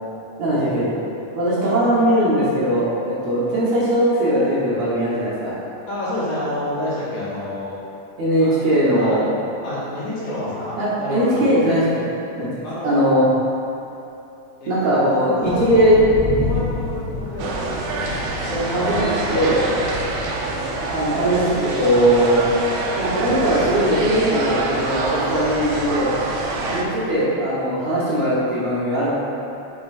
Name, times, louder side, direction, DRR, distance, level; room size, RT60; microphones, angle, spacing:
voice 1, 0.4-0.9 1.4-5.5 8.2-9.3 10.8-12.0 12.4-12.5 12.8-13.2 14.7-16.0 18.7-19.1 19.3-19.6 20.9-22.4 23.0-26.2 26.7-29.1, equal, 65° right, -9 dB, 2.2 m, -19 dB
voice 2, 5.9-7.8 8.4-9.2 9.6-11.5 12.6-13.0 14.6-14.9 15.4-16.0 16.4-19.4 26.5-26.8, left 1 dB, 60° left, -10 dB, 2.9 m, -29 dB
sound 1, 15.4-22.5, left 2 dB, 85° left, 1.3 m, -31 dB
sound 2, 17.4-26.8, right 3 dB, 80° right, 1.6 m, -26 dB
7.8 x 6.1 x 2.5 m, 2.8 s
omnidirectional pair, 3.8 m